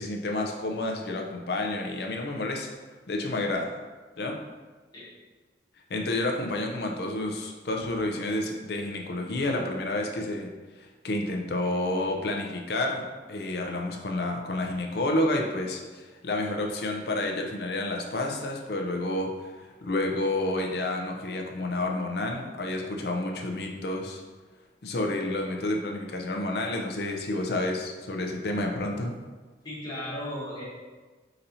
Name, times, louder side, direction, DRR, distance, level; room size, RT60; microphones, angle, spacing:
voice 1, 0.0-2.7 3.1-3.7 4.2-4.4 5.9-10.5 10.8-24.2 24.8-29.2, left 2 dB, 55° left, 2 dB, 0.5 m, -30 dB
voice 2, 29.6-30.6, left 1 dB, 20° left, -8 dB, 1.2 m, -35 dB
4.2 x 4.0 x 2.7 m, 1.4 s
head